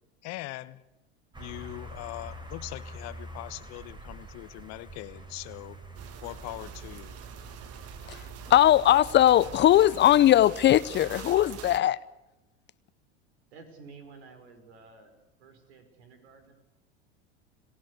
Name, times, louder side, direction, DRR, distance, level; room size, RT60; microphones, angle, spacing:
voice 1, 0.2-0.8 1.4-5.8 6.2-7.2, left 19 dB, 50° left, 1.3 m, -41 dB
sound 1, 1.3-9.8, right 1 dB, 15° right, 3.8 m, -46 dB
sound 2, 5.9-11.8, right 8 dB, 45° right, 1.8 m, -44 dB
voice 2, 8.5-12.0, left 12 dB, 35° left, 0.7 m, -20 dB
voice 3, 13.5-15.1 15.4-16.5, right 4 dB, 75° right, 5.5 m, -51 dB
27.5 x 16.5 x 8.2 m
hypercardioid pair, 90°, 33 cm